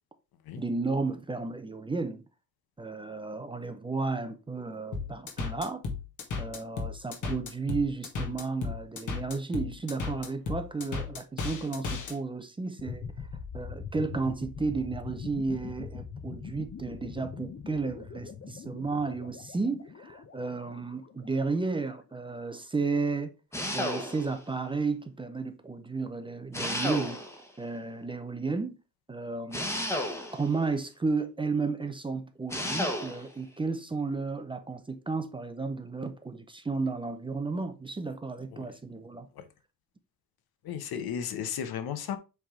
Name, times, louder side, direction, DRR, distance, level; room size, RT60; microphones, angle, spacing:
voice 1, 0.6-2.2 2.8-5.8 6.4-13.3 13.5-23.3 23.7-27.2 27.6-28.7 29.1-29.7 30.3-39.3, right 4 dB, 15° right, 0.5 m, -33 dB
sound 1, 4.9-12.1, left 4 dB, 55° left, 1.7 m, -34 dB
sound 2, 12.8-21.7, left 6 dB, 35° left, 0.7 m, -42 dB
sound 3, 23.5-24.4 26.5-27.5 29.5-30.6 32.5-33.3, left 1 dB, 10° left, 1.0 m, -32 dB
voice 2, 40.6-42.2, left 8 dB, 85° left, 1.0 m, -34 dB
7.7 x 3.5 x 3.6 m
wide cardioid pair, 175°, 36 cm